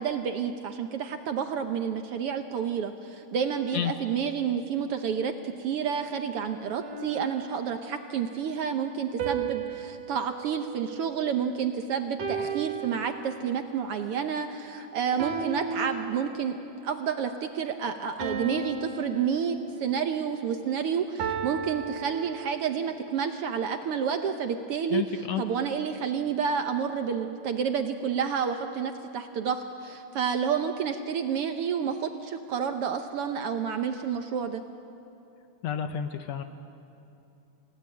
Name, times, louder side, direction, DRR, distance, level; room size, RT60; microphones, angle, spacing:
voice 1, 0.0-16.6 16.8-25.0 25.4-34.6, right 7 dB, 70° right, 7 dB, 1.4 m, -30 dB
sound 1, 6.8-8.0 9.2-11.6 12.2-13.7 15.2-16.7 18.2-20.1 21.2-22.8, right 6 dB, 85° right, 3.1 m, -35 dB
voice 2, 24.9-25.4 35.6-36.4, left 9 dB, 70° left, 8 dB, 1.8 m, -30 dB
28.5 x 17.0 x 8.8 m, 2.8 s
omnidirectional pair, 3.5 m